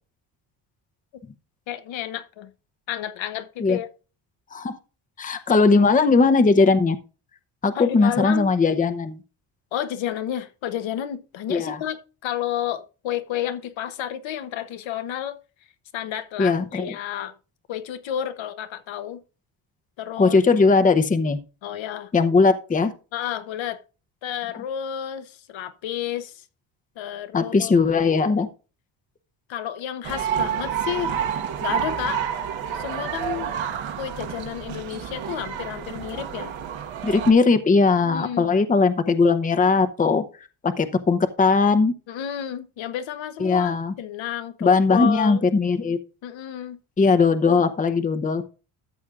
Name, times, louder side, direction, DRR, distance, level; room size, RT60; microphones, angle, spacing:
voice 1, 1.7-2.5 2.9-3.9 7.7-8.5 9.7-15.4 15.9-17.3 17.7-19.2 20.0-20.4 21.6-22.1 23.1-23.8 24.2-26.4 27.0-27.7 29.5-31.2 31.6-32.2 32.7-33.5 34.0-36.5 38.0-38.5 42.1-45.4 46.2-46.8, left 10 dB, 65° left, 1.1 m, -31 dB
voice 2, 5.2-7.0 7.6-9.2 11.5-11.8 16.4-16.9 20.2-21.4 22.1-22.9 27.3-28.5 37.0-40.2 40.6-41.9 43.4-43.9 44.6-46.0 47.0-48.4, left 4 dB, 15° left, 0.7 m, -19 dB
sound 1, 30.0-37.3, right 8 dB, 70° right, 1.5 m, -29 dB
13.5 x 7.2 x 2.5 m
cardioid pair, 105°, 49 cm